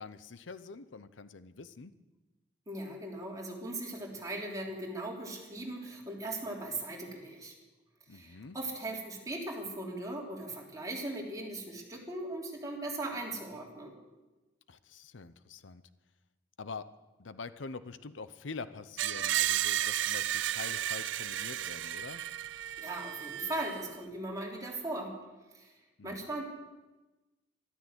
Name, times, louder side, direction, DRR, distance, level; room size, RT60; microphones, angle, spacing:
voice 1, 0.0-1.9 8.1-8.6 14.7-15.8 16.6-16.9 17.2-22.2 26.0-26.2, left 4 dB, 90° left, 13 dB, 0.7 m, -45 dB
voice 2, 2.7-7.5 8.1-13.9 22.8-25.2 25.5-25.7 26.0-26.4, right 2 dB, 20° right, -2 dB, 3.4 m, -39 dB
Screech, 19.0-23.9, right 12 dB, 75° right, 0.4 m, -33 dB
13.0 x 13.0 x 8.1 m, 1.1 s
head